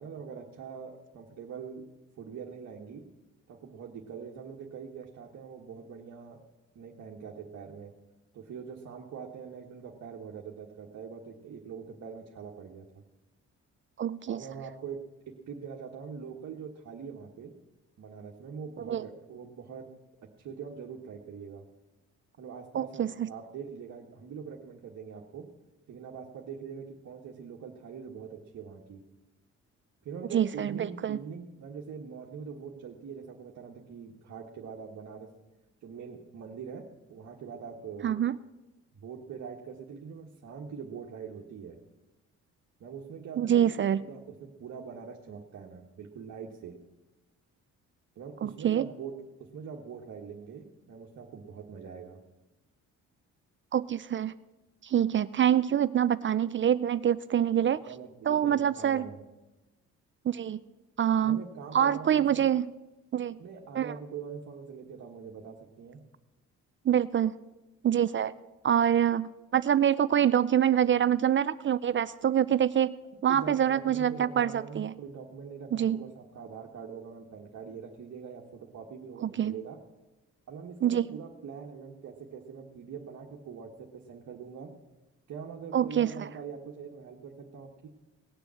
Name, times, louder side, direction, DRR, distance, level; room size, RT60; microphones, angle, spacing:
voice 1, 0.0-1.8 2.2-3.0 3.5-6.4 6.7-7.9 8.3-13.0 14.3-15.0 15.5-17.5 18.0-19.9 20.4-21.6 22.4-25.5 25.9-29.0 30.0-35.3 35.8-36.8 37.1-38.1 38.9-41.8 42.8-46.7 48.1-49.1 49.5-52.2 57.8-59.2 61.2-62.4 63.4-66.0 73.3-79.8 80.5-84.7 85.3-87.9, right 6 dB, 60° right, -1 dB, 1.6 m, -43 dB
voice 2, 14.0-14.4 18.9-19.0 22.7-23.3 30.3-31.2 38.0-38.4 43.4-44.0 48.4-48.9 53.7-54.3 54.8-57.8 58.3-59.0 60.3-60.6 61.0-61.4 61.7-62.7 63.1-63.4 63.7-63.9 66.9-67.3 67.8-68.3 68.6-72.9 73.2-74.9 75.7-76.0 79.2-79.6 80.8-81.2 85.7-86.3, right 9 dB, 40° right, 15 dB, 0.5 m, -25 dB
18.5 x 6.9 x 7.7 m, 1.1 s
cardioid pair, 90°, 30 cm